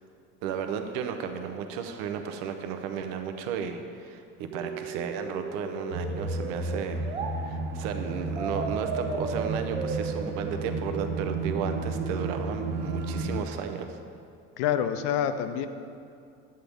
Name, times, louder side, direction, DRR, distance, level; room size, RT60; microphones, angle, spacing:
voice 1, 0.4-7.1 7.4-14.0, right 7 dB, 70° right, 6 dB, 0.7 m, -34 dB
sound 1, 4.5-7.3 8.4-11.4, right 4 dB, 20° right, 0.4 m, -36 dB
sound 2, 5.9-13.4, right 3 dB, 35° right, 0.8 m, -32 dB
voice 2, 14.6-15.7, left 9 dB, 60° left, 10 dB, 0.5 m, -27 dB
9.7 x 7.6 x 3.5 m, 2.5 s
cardioid pair, 180°, 30 cm